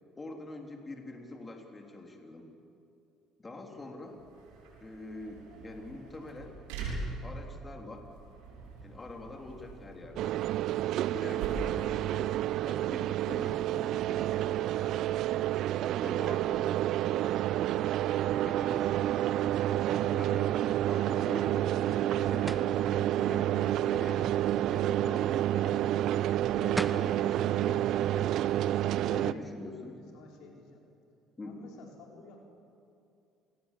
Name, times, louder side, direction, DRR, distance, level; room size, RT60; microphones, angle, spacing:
voice 1, 0.2-2.5 3.4-4.2 4.8-6.6 7.2-8.0 8.8-10.4 11.0-15.0 16.0-16.8 17.1-17.5 18.4-19.0 19.8-25.8 26.5-28.5 29.0-29.9 31.4-31.5, left 2 dB, 25° left, 3 dB, 3.5 m, -45 dB
voice 2, 3.6-4.0 28.8-30.8 31.5-32.4, left 3 dB, 75° left, 1 dB, 4.1 m, -52 dB
sound 1, 4.0-19.4, right 3 dB, 90° right, 7.0 m, -45 dB
sound 2, 10.2-29.3, right 13 dB, 70° right, 0.6 m, -29 dB
Book Falling, 22.5-22.8 26.4-26.5 26.8-27.1, right 1 dB, 10° right, 1.2 m, -35 dB
27.0 x 19.5 x 7.6 m, 2.5 s
supercardioid pair, 80°, 0 cm